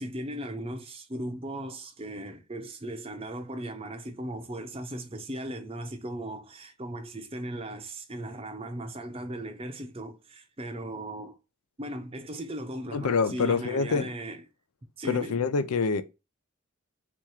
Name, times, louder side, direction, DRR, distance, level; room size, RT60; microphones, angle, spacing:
voice 1, 0.0-11.4 11.8-14.4 15.0-15.4, right 1 dB, 25° right, 0.6 m, -37 dB
voice 2, 12.9-14.1 15.0-16.0, left 5 dB, 90° left, 0.5 m, -26 dB
3.5 x 3.0 x 4.7 m
head